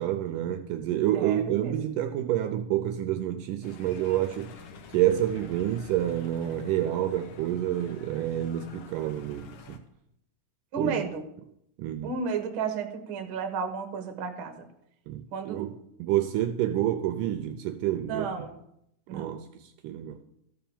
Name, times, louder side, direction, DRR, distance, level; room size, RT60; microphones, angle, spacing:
voice 1, 0.0-4.6 4.9-9.8 10.8-11.0 11.8-12.1 15.1-18.3 19.1-20.2, right 12 dB, 80° right, 8 dB, 2.1 m, -28 dB
voice 2, 1.1-1.7 10.7-11.3 12.0-14.7 15.3-15.6 18.1-18.5 19.1-19.4, right 5 dB, 60° right, 6 dB, 1.4 m, -32 dB
sound 1, 3.6-9.8, left 5 dB, 65° left, 2.1 m, -49 dB
13.5 x 5.8 x 7.1 m, 0.77 s
omnidirectional pair, 4.2 m